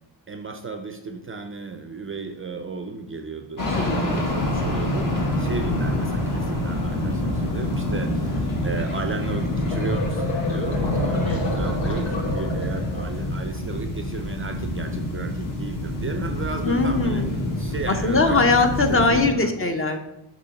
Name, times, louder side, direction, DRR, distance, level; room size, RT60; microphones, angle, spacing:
voice 1, 0.3-17.2 17.6-18.4 18.9-19.5, right 4 dB, 30° right, 6 dB, 0.4 m, -34 dB
sound 1, 3.6-19.3, left 1 dB, 45° left, 1.5 m, -26 dB
voice 2, 3.7-4.2 16.6-17.3 17.9-20.0, left 3 dB, 30° left, 6 dB, 0.7 m, -21 dB
sound 2, 9.4-13.3, left 3 dB, 90° left, 1.3 m, -30 dB
6.7 x 3.0 x 5.8 m, 0.86 s
wide cardioid pair, 135°, 45 cm